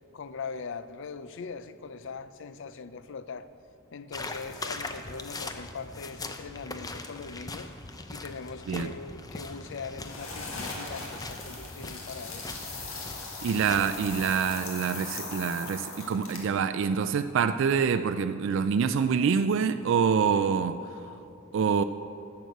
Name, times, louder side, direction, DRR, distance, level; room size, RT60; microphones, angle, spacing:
voice 1, 0.1-3.5 3.9-7.7 8.1-12.5, left 5 dB, 65° left, 0.5 m, -41 dB
sound 1, 4.1-14.3, left 2 dB, 20° left, 0.6 m, -41 dB
sound 2, 10.0-16.6, left 3 dB, 85° left, 1.9 m, -39 dB
voice 2, 13.4-20.8 21.5-21.8, right 6 dB, 65° right, 0.3 m, -26 dB
11.0 x 6.8 x 7.8 m
head